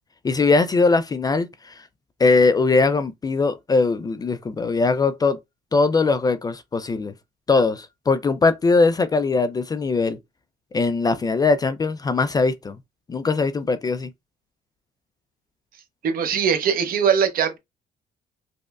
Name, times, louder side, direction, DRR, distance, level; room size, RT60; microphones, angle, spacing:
voice 1, 0.2-1.7 2.2-5.4 5.7-7.1 7.5-10.2 10.7-12.8 13.1-14.1, left 3 dB, 25° left, 0.3 m, -20 dB
voice 2, 16.0-17.6, right 7 dB, 60° right, 0.8 m, -21 dB
5.1 x 2.1 x 2.3 m
cardioid pair, 110°, 17 cm